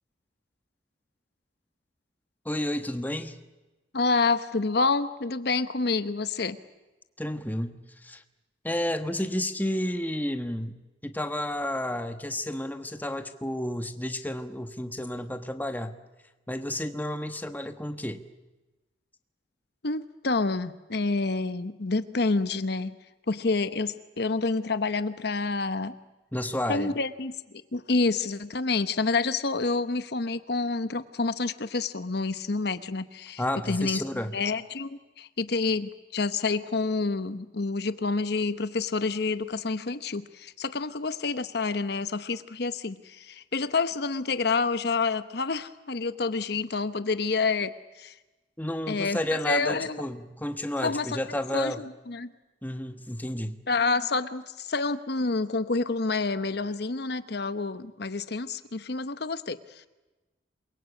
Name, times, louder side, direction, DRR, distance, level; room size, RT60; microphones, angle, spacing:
voice 1, 2.4-3.4 7.2-8.2 8.6-10.8 11.0-15.9 16.5-18.2 26.3-27.0 33.4-34.4 48.6-51.8 52.6-53.6, left 1 dB, 10° left, 8 dB, 1.3 m, -31 dB
voice 2, 3.9-6.6 19.8-23.0 23.3-26.0 26.7-27.3 27.7-33.4 33.7-34.0 34.3-48.1 48.9-50.0 50.8-51.2 51.5-51.7 52.1-52.3 53.7-59.9, left 3 dB, 60° left, 12 dB, 1.0 m, -28 dB
28.0 x 23.0 x 8.4 m, 1.1 s
head